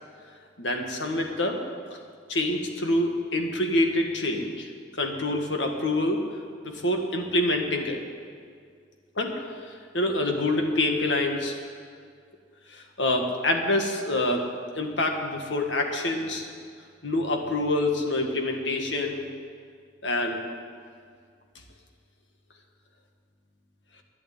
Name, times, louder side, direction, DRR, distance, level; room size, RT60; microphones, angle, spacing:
voice 1, 0.6-1.6 2.3-4.7 5.0-6.2 6.6-8.0 9.2-9.4 9.9-11.5 12.7-14.4 14.8-16.5 17.0-19.3 20.0-20.4, left 1 dB, 80° left, 3 dB, 1.9 m, -26 dB
12.0 x 10.5 x 9.2 m, 2.1 s
head